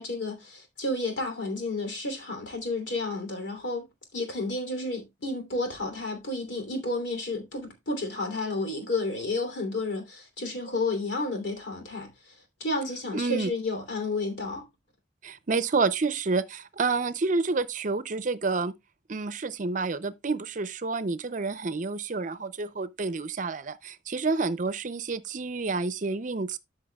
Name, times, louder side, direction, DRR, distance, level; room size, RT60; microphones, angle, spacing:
voice 1, 0.0-3.9 4.1-12.1 12.6-14.6, left 2 dB, 85° left, 3.1 m, -31 dB
voice 2, 13.1-13.5 15.2-18.7 19.1-26.6, right 4 dB, 45° right, 0.6 m, -29 dB
13.5 x 5.8 x 2.3 m
head